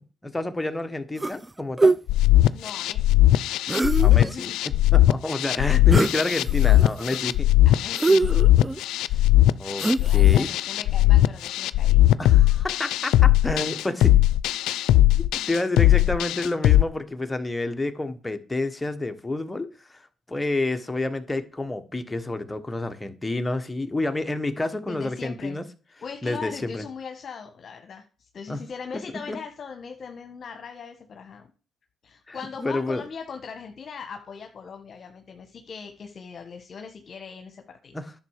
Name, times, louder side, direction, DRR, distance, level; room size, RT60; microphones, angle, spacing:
voice 1, 0.2-1.9 4.0-4.5 4.9-7.5 9.6-9.9 10.1-10.5 12.2-14.2 15.1-20.0 20.3-25.6 26.2-26.8 28.5-28.6 29.3-29.4 32.3-33.0 37.9-38.1, left 2 dB, 15° left, 8 dB, 1.5 m, -29 dB
sound 1, 1.2-1.5 1.8-2.0 3.7-4.3 5.9-6.2 6.6-7.2 7.9-8.8 9.8-10.3, right 2 dB, 15° right, 0.4 m, -22 dB
sound 2, 2.1-16.8, left 15 dB, 90° left, 0.4 m, -19 dB
voice 2, 2.5-3.2 4.2-4.6 7.6-8.3 9.1-9.3 9.9-12.0 15.9-16.0 24.9-25.6 26.0-31.5 32.0-38.0, left 6 dB, 50° left, 5 dB, 1.3 m, -40 dB
10.5 x 6.9 x 4.9 m, 0.36 s
cardioid pair, 90°, 0 cm